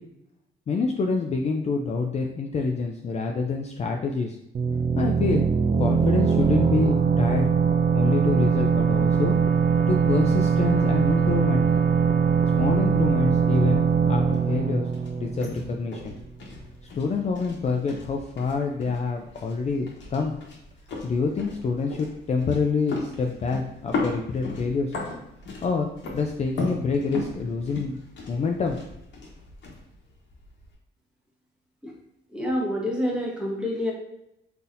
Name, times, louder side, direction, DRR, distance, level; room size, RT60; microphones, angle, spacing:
voice 1, 0.7-4.4 5.0-5.4 5.8-7.5 7.9-9.3 9.9-11.7 12.6-14.9 15.2-16.2 16.9-20.3 21.0-24.9 25.6-28.0 28.3-28.8, left 4 dB, 35° left, 2 dB, 0.4 m, -26 dB
sound 1, 4.5-16.0, right 6 dB, 40° right, 0.4 m, -22 dB
sound 2, 13.7-30.7, left 3 dB, 65° left, 1.1 m, -37 dB
voice 2, 32.3-33.9, left 1 dB, 5° right, -3 dB, 1.1 m, -27 dB
3.9 x 2.8 x 2.6 m, 0.80 s
cardioid pair, 90°, 20 cm